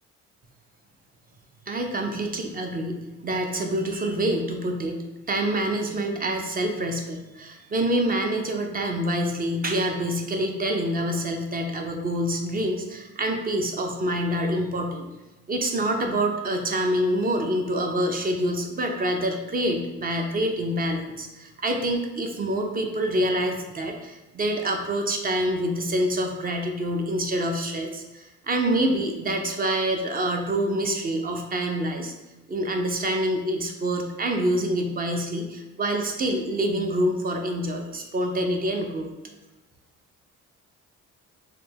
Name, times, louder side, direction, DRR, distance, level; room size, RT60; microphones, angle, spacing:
voice 1, 1.7-15.1 15.5-32.1 32.5-39.1, right 1 dB, 30° right, 3 dB, 0.5 m, -26 dB
3.3 x 2.2 x 3.3 m, 1.1 s
cardioid pair, 90°, 30 cm